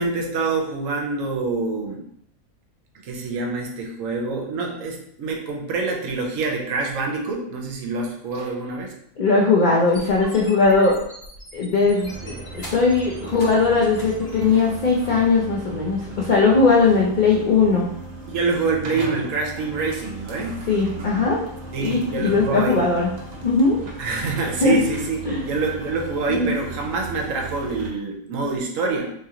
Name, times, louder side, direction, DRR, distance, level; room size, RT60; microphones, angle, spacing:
voice 1, 0.0-2.0 2.9-8.9 18.3-20.6 21.7-22.9 24.0-25.2 25.4-29.1, right 4 dB, 70° right, 1 dB, 1.0 m, -26 dB
voice 2, 9.2-11.0 11.5-17.9 20.7-21.4 21.8-23.1 23.4-23.8 24.6-24.7 25.3-25.4 26.3-26.5, left 4 dB, 85° left, -3 dB, 0.4 m, -19 dB
sound 1, 9.8-14.8, left 1 dB, 45° left, 1.2 m, -41 dB
sound 2, 12.0-27.9, right 3 dB, 40° right, 0.7 m, -37 dB
2.9 x 2.8 x 3.6 m, 0.71 s
omnidirectional pair, 1.5 m